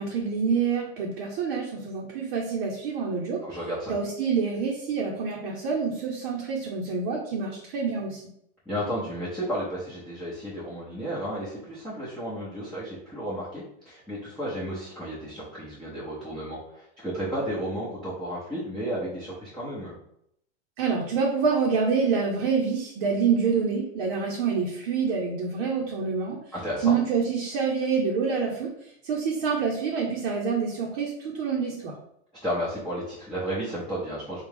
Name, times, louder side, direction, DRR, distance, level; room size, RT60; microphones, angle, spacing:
voice 1, 0.0-3.4 3.9-8.2 20.8-26.4 26.8-28.7 29.0-32.0, right 5 dB, 60° right, -2 dB, 0.8 m, -27 dB
voice 2, 3.4-4.0 8.7-19.9 26.5-27.0 32.4-34.4, equal, ahead, -10 dB, 0.9 m, -33 dB
3.4 x 2.4 x 3.4 m, 0.74 s
supercardioid pair, 130°, 34 cm